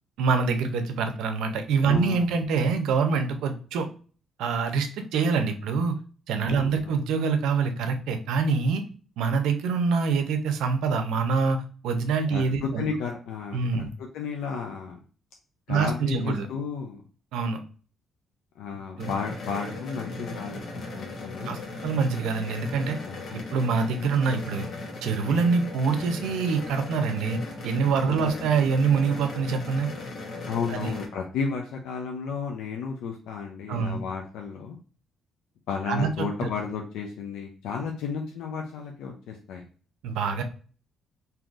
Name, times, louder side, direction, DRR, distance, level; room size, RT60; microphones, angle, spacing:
voice 1, 0.2-3.9 4.4-6.0 6.3-8.8 9.2-12.8 13.5-13.9 15.7-16.5 17.3-17.6 19.0-19.1 21.5-23.0 23.3-24.7 25.0-29.9 30.7-30.9 33.7-34.0 35.9-36.1 36.4-36.5 40.0-40.4, right 5 dB, 90° right, 7 dB, 0.5 m, -25 dB
voice 2, 1.8-2.3 6.5-7.0 12.3-13.6 14.0-15.0 15.7-17.0 18.6-21.6 23.1-23.5 28.1-28.4 30.5-34.8 35.7-39.6, left 5 dB, 90° left, 1 dB, 0.4 m, -33 dB
sound 1, 19.0-31.1, left 2 dB, 60° left, 1.0 m, -37 dB
3.8 x 2.7 x 2.4 m, 0.40 s
cardioid pair, 90°, 0 cm